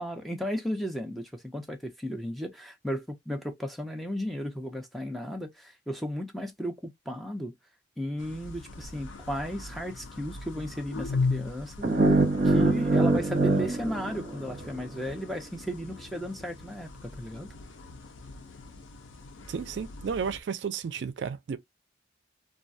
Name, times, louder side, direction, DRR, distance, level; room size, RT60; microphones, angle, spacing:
voice 1, 0.0-7.5 8.0-12.2 12.4-17.5, equal, ahead, 0.4 m, -35 dB
sound 1, 8.2-20.4, left 4 dB, 85° left, 0.5 m, -39 dB
sound 2, 11.8-14.9, right 2 dB, 45° right, 0.8 m, -24 dB
voice 2, 19.5-21.6, right 6 dB, 70° right, 0.4 m, -33 dB
2.3 x 2.2 x 2.5 m
head